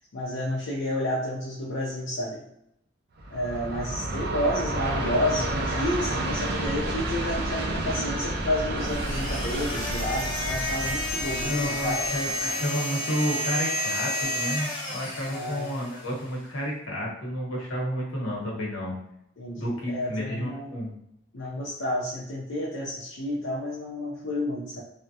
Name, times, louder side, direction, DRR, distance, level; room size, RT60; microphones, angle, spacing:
voice 1, 0.1-2.4 3.3-12.7 15.3-15.8 19.4-20.7 21.3-24.8, left 1 dB, 65° left, -6 dB, 0.5 m, -30 dB
Train, 3.2-12.4, right 1 dB, 50° right, 0.4 m, -30 dB
voice 2, 4.0-4.3 11.4-18.9 19.6-20.9, equal, 85° left, -3 dB, 1.1 m, -31 dB
sound 1, 8.8-16.1, left 1 dB, 25° left, 0.9 m, -31 dB
3.4 x 2.1 x 2.7 m, 0.78 s
head